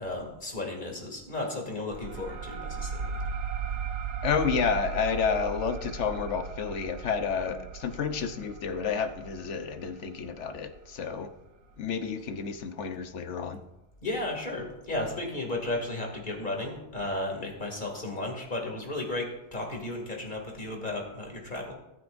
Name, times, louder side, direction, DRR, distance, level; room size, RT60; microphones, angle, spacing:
voice 1, 0.0-3.2 14.0-21.7, left 2 dB, 40° left, 0 dB, 2.7 m, -34 dB
sound 1, 1.9-11.1, right 5 dB, 80° right, 1.1 m, -37 dB
voice 2, 4.2-11.3 11.8-13.6, left 6 dB, 80° left, 8 dB, 1.2 m, -30 dB
20.0 x 9.3 x 2.6 m, 0.95 s
omnidirectional pair, 1.2 m